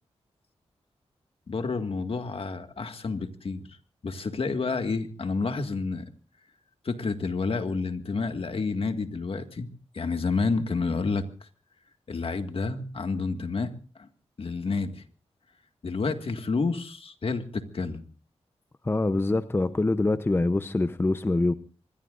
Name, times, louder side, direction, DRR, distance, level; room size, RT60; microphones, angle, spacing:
voice 1, 1.5-3.7 4.0-6.1 6.8-9.7 9.9-11.5 12.1-13.7 14.0-14.1 14.4-15.0 15.8-18.0, left 4 dB, 55° left, 7 dB, 1.9 m, -29 dB
voice 2, 18.8-21.5, left 2 dB, 20° left, 12 dB, 0.7 m, -24 dB
25.0 x 21.0 x 2.6 m, 0.35 s
wide cardioid pair, 85°, 11 cm